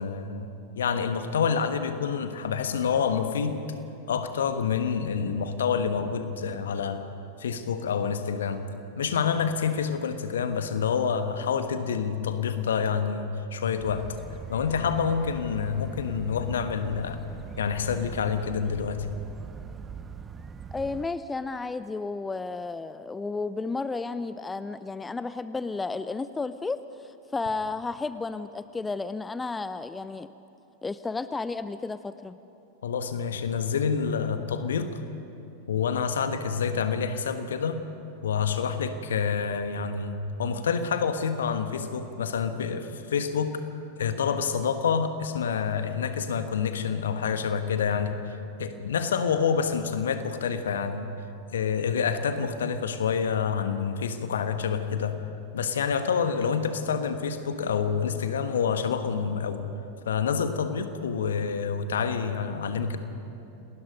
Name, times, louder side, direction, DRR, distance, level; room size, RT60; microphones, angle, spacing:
voice 1, 0.0-3.6 4.1-7.1 7.4-8.6 9.0-14.2 14.5-17.2 17.6-19.1 32.8-35.0 35.7-37.8 38.2-43.6 44.0-51.1 51.5-55.2 55.5-59.6 60.1-63.0, left 6 dB, 65° left, 9 dB, 1.4 m, -27 dB
sound 1, 13.8-21.1, right 5 dB, 20° right, 0.9 m, -42 dB
voice 2, 20.7-30.3 30.8-32.4, left 3 dB, 10° left, 14 dB, 0.5 m, -32 dB
28.5 x 19.5 x 5.3 m, 2.9 s
figure-of-eight pair, 90°, 0 cm